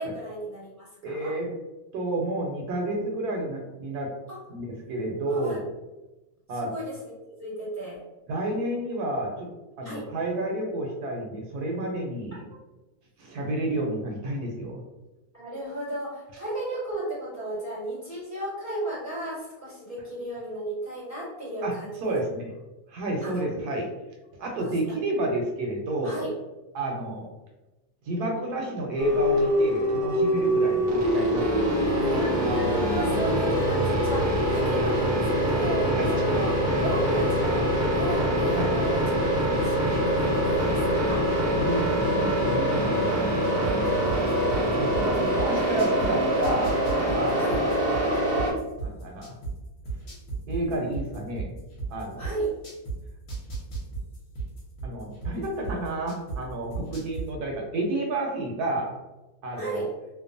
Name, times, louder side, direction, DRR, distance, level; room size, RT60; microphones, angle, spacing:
voice 1, 0.0-1.3 4.3-4.4 5.3-5.6 6.7-7.0 7.4-8.0 9.8-10.0 15.3-22.2 23.2-23.4 24.6-24.7 26.0-26.3 31.9-36.5 36.8-41.2 47.4-47.6 52.2-52.5 59.6-59.9, right 1 dB, 15° left, -10 dB, 0.9 m, -34 dB
voice 2, 1.0-1.5 1.9-4.1 4.5-5.7 6.5-6.7 8.3-9.5 9.8-12.4 13.2-14.8 21.6-21.8 22.0-22.5 22.9-23.9 24.4-26.2 26.7-27.3 28.0-32.0 36.0-36.1 38.5-38.7 41.5-43.5 44.5-46.8 47.1-47.5 48.8-49.4 50.5-51.6 51.9-52.3 54.8-59.0 59.4-59.9, right 1 dB, 75° right, 0 dB, 1.0 m, -30 dB
sound 1, 29.0-48.5, equal, 40° right, 0.7 m, -24 dB
sound 2, 43.6-46.1 46.4-49.5 49.8-52.9 53.3-56.4 56.7-57.2, right 5 dB, 60° left, 1.2 m, -33 dB
2.8 x 2.0 x 2.5 m, 1.1 s
omnidirectional pair, 1.8 m